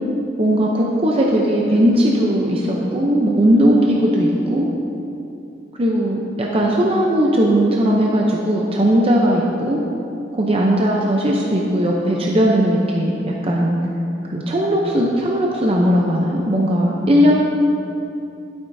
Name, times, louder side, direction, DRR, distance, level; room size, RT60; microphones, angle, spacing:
voice 1, 0.4-4.7 5.8-9.8 10.3-13.1 13.4-13.8 14.3-17.3, equal, 30° right, -2 dB, 0.6 m, -17 dB
12.0 x 8.5 x 2.7 m, 2.8 s
head